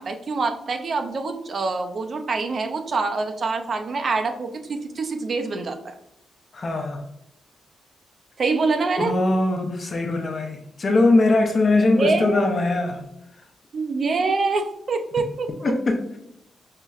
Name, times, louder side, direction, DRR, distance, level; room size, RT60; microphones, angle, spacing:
voice 1, 0.0-5.9 8.4-9.1 11.9-12.7 13.7-15.7, right 3 dB, 40° right, 6 dB, 0.3 m, -25 dB
voice 2, 6.5-7.0 9.0-13.0 15.6-16.1, left 2 dB, 35° left, 3 dB, 0.5 m, -21 dB
5.5 x 2.0 x 2.3 m, 0.80 s
wide cardioid pair, 160°, 0 cm